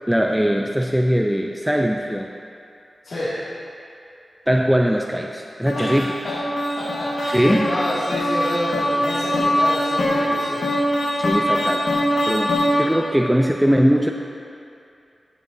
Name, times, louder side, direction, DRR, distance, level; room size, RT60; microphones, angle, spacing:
voice 1, 0.1-2.3 4.5-6.1 7.3-7.7 11.2-11.9 12.3-14.1, equal, 5° right, 2 dB, 0.4 m, -20 dB
voice 2, 3.0-3.4 5.7-6.3 6.8-10.6, left 1 dB, 70° left, -11 dB, 2.1 m, -29 dB
sound 1, 5.7-13.1, equal, 85° left, 1.3 m, -22 dB
14.5 x 6.9 x 2.7 m, 2.5 s
wide cardioid pair, 65°, 0 cm